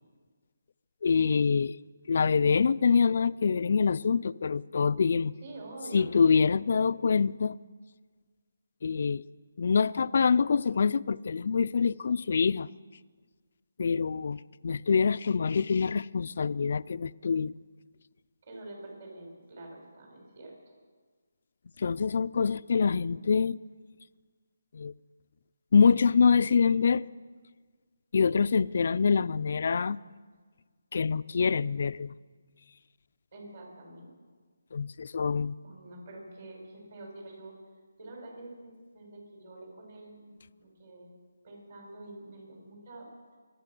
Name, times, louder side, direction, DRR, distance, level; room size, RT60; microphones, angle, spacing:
voice 1, 1.0-1.8 2.1-5.3 5.9-7.6 8.8-9.2 9.6-12.7 13.8-17.5 21.8-23.6 24.7-24.9 25.7-27.0 28.1-30.0 30.9-32.1 34.7-35.6, left 5 dB, 55° left, 0.4 m, -25 dB
voice 2, 5.4-6.1 18.4-20.7 33.3-34.1 35.6-37.5 38.0-41.1 41.4-43.1, right 2 dB, 45° right, 5.9 m, -46 dB
24.5 x 9.4 x 6.1 m
figure-of-eight pair, 160°, 0 cm